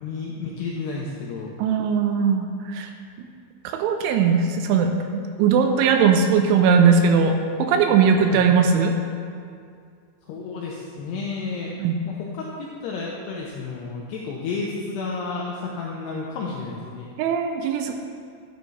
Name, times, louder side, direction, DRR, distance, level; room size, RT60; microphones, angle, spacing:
voice 1, 0.0-1.6 8.2-8.5 10.3-11.8 12.1-17.1, left 4 dB, 80° left, -2 dB, 2.4 m, -31 dB
voice 2, 1.6-2.9 3.2-3.3 3.6-7.3 7.6-8.9 11.8-12.0 17.2-18.0, right 6 dB, 80° right, 5 dB, 2.9 m, -19 dB
12.5 x 9.2 x 3.3 m, 2.3 s
omnidirectional pair, 5.8 m